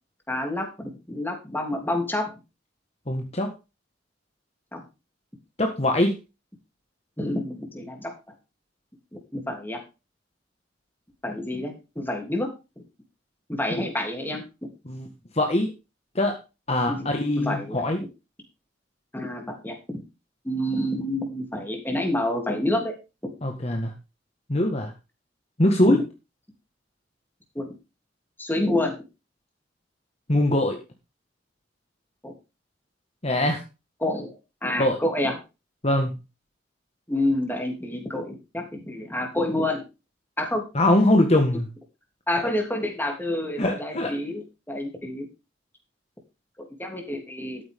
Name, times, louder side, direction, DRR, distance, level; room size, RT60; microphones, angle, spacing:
voice 1, 0.3-2.3 4.7-4.8 7.2-8.1 9.3-9.8 11.2-12.5 13.5-14.4 16.9-17.8 19.1-19.8 20.4-23.0 23.2-23.3 25.9-26.0 27.5-27.8 28.4-28.9 32.2-32.3 34.0-34.3 34.6-35.4 37.1-39.8 40.4-40.6 42.3-45.3 46.6-47.6, left 1 dB, 10° left, 3 dB, 3.1 m, -28 dB
voice 2, 3.1-3.5 5.6-6.1 13.7-13.8 14.9-15.1 15.3-15.7 16.1-16.4 16.7-18.0 23.4-23.9 24.5-24.9 25.6-26.0 30.3-30.8 33.2-33.6 34.8-35.0 35.8-36.1 40.7-41.7 43.6-44.1, left 1 dB, 35° left, 4 dB, 1.7 m, -22 dB
13.0 x 8.9 x 3.7 m, 0.28 s
head